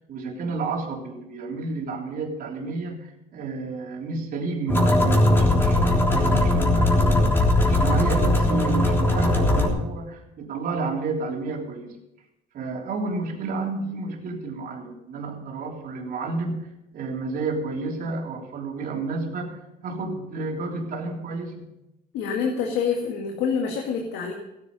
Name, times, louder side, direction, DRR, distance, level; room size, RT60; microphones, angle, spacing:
voice 1, 0.1-7.2 7.6-12.0 12.5-21.7, right 3 dB, 60° right, 0 dB, 3.5 m, -31 dB
sound 1, 4.7-9.7, left 1 dB, 15° left, 3.5 m, -19 dB
voice 2, 22.1-24.3, left 6 dB, 85° left, 1 dB, 2.0 m, -26 dB
16.5 x 9.9 x 5.4 m, 0.90 s
cardioid pair, 110°, 17 cm